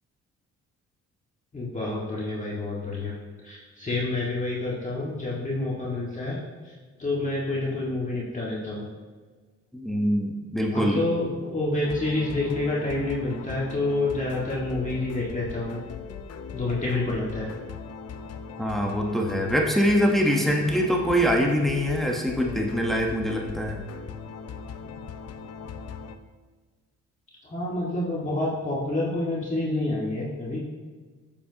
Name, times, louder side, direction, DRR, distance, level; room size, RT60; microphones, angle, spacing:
voice 1, 1.5-3.1 3.4-6.4 6.7-6.8 7.0-8.8 10.7-15.8 16.5-17.5 27.5-30.6, left 2 dB, 25° left, -5 dB, 1.8 m, -28 dB
voice 2, 9.7-11.0 18.6-23.8, equal, ahead, 0 dB, 1.2 m, -24 dB
sound 1, 11.8-26.2, left 6 dB, 55° left, 0.7 m, -39 dB
10.0 x 7.4 x 2.9 m, 1.4 s
cardioid pair, 90°, 30 cm